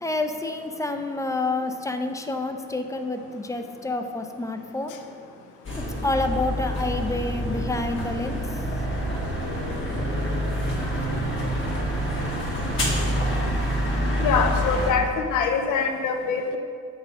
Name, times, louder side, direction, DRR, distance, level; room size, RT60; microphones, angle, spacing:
voice 1, 0.0-4.9 5.8-8.6, left 2 dB, 10° left, 5 dB, 0.4 m, -28 dB
sound 1, 5.6-14.9, equal, 40° left, 1.5 m, -27 dB
voice 2, 14.2-16.6, left 5 dB, 80° left, 5 dB, 0.6 m, -24 dB
7.3 x 4.1 x 3.6 m, 2.3 s
cardioid pair, 90°, 30 cm